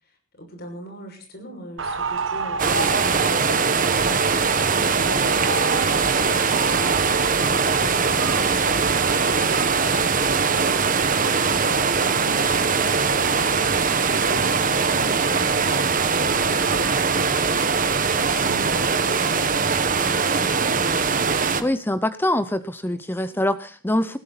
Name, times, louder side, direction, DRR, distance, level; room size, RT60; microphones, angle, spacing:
voice 1, 0.0-4.0 14.1-17.3 18.0-22.0 22.8-23.4 24.1-24.2, equal, 50° left, 4 dB, 6.2 m, -41 dB
sound 1, 1.8-20.7, right 4 dB, 65° right, 1.3 m, -34 dB
sound 2, 2.6-21.6, right 5 dB, 40° right, 1.4 m, -21 dB
voice 2, 21.6-24.2, left 1 dB, 10° left, 13 dB, 0.7 m, -24 dB
19.5 x 15.5 x 4.1 m, 0.40 s
head